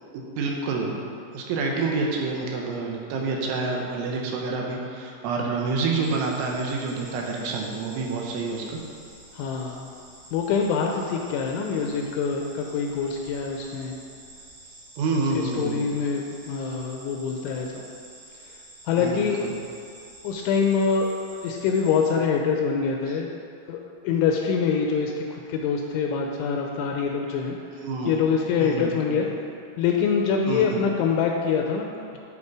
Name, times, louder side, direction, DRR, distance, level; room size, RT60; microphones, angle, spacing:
voice 1, 0.1-1.1 1.3-8.8 15.0-15.9 19.0-19.5 27.7-29.2 30.5-30.8, right 3 dB, 80° right, 0 dB, 3.2 m, -28 dB
sound 1, 6.0-22.1, right 1 dB, 55° right, 2.3 m, -48 dB
voice 2, 9.3-9.9 10.3-14.0 15.4-17.8 18.9-19.5 20.2-21.1 21.4-23.3 23.7-27.6 28.1-29.3 29.8-32.2, left 6 dB, 80° left, 1 dB, 2.8 m, -25 dB
12.5 x 5.0 x 4.8 m, 2.4 s
omnidirectional pair, 5.8 m